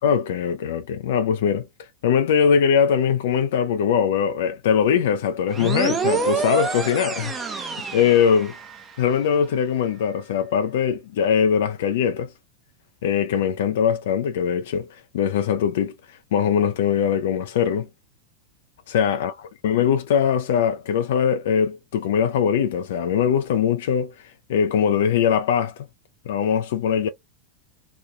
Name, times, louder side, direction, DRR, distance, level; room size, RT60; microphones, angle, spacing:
voice 1, 0.0-1.7 2.0-7.7 7.9-8.6 9.0-12.3 13.0-15.9 16.3-17.9 18.9-24.1 24.5-25.9 26.3-27.1, left 7 dB, 60° left, 0.4 m, -21 dB
sound 1, 5.5-9.0, right 5 dB, 25° right, 0.8 m, -27 dB
3.0 x 2.2 x 3.1 m
figure-of-eight pair, 90°, 0 cm